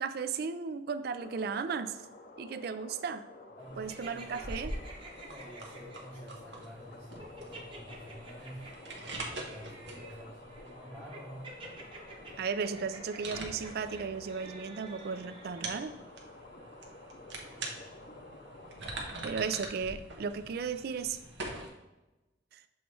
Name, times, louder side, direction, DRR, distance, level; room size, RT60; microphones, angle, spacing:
voice 1, 0.0-2.0 2.4-3.2 3.8-4.7 12.4-16.0 19.2-21.2 22.5-22.6, right 5 dB, 60° right, 11 dB, 0.4 m, -35 dB
sound 1, 1.2-19.3, left 2 dB, 50° left, 0.7 m, -51 dB
voice 2, 3.6-4.6 5.3-8.6 9.0-11.5 17.5-17.8, equal, ahead, -6 dB, 0.8 m, -49 dB
sound 2, 3.6-21.7, right 2 dB, 75° right, 1.0 m, -45 dB
sound 3, 3.9-6.2 7.2-15.6, right 3 dB, 30° right, 1.0 m, -50 dB
7.1 x 3.0 x 4.7 m, 1.0 s
head